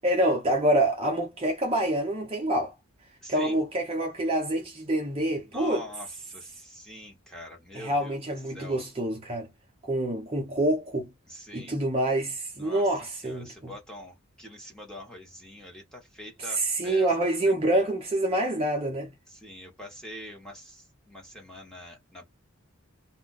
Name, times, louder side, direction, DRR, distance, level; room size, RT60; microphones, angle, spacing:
voice 1, 0.0-2.7 3.3-5.8 7.7-9.5 9.8-11.1 11.5-13.7 16.5-19.1, right 1 dB, 30° right, 0.7 m, -26 dB
voice 2, 3.2-3.6 5.5-8.2 8.5-8.8 11.3-11.7 12.6-17.1 17.4-17.8 19.3-22.2, left 1 dB, 5° left, 1.0 m, -44 dB
2.4 x 2.2 x 3.9 m
head